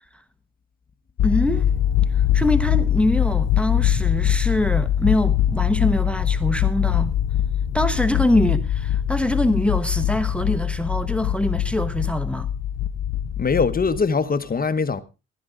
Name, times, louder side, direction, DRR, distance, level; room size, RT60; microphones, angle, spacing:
sound 1, 1.2-14.0, left 10 dB, 60° left, 0.6 m, -22 dB
voice 1, 1.2-1.7 2.3-7.1 7.7-12.5, left 1 dB, 5° left, 1.1 m, -23 dB
voice 2, 13.4-15.0, left 5 dB, 30° left, 1.1 m, -22 dB
15.5 x 11.5 x 3.7 m
cardioid pair, 90°, 30 cm